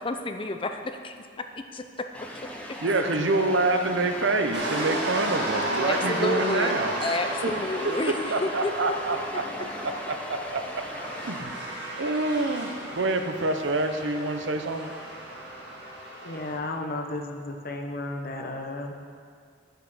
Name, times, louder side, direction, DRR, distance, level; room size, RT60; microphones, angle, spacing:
voice 1, 0.0-1.4 1.7-1.8 5.8-8.7, left 2 dB, 30° left, 7 dB, 0.5 m, -30 dB
sound 1, 2.1-11.4, equal, 5° left, 1.0 m, -39 dB
voice 2, 2.8-7.0 7.4-7.5 7.8-9.4 9.8-10.9 11.3-11.5 12.0-14.9, right 2 dB, 80° right, 7 dB, 0.7 m, -27 dB
sound 2, 4.5-16.5, right 1 dB, 65° right, 2.0 m, -34 dB
voice 3, 16.2-19.0, left 2 dB, 50° left, 4 dB, 0.9 m, -33 dB
10.0 x 6.8 x 6.1 m, 2.2 s
head